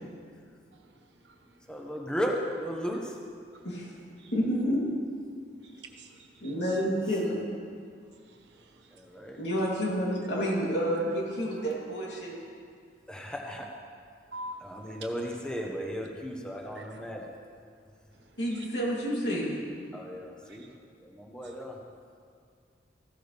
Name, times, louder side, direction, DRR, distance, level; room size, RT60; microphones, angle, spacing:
voice 1, 1.7-3.2 8.9-9.4 13.1-13.7 14.6-17.4 19.9-20.7 21.0-21.8, equal, 5° left, -1 dB, 1.1 m, -35 dB
voice 2, 4.3-4.8 6.4-7.5 9.4-12.3 18.4-19.5, equal, 70° left, -5 dB, 3.3 m, -29 dB
voice 3, 5.7-6.1 6.4-6.5 8.3-8.7 14.3-14.6 16.8-16.9 20.6-20.7, equal, 75° right, 4 dB, 1.3 m, -44 dB
15.0 x 12.5 x 3.5 m, 2.2 s
head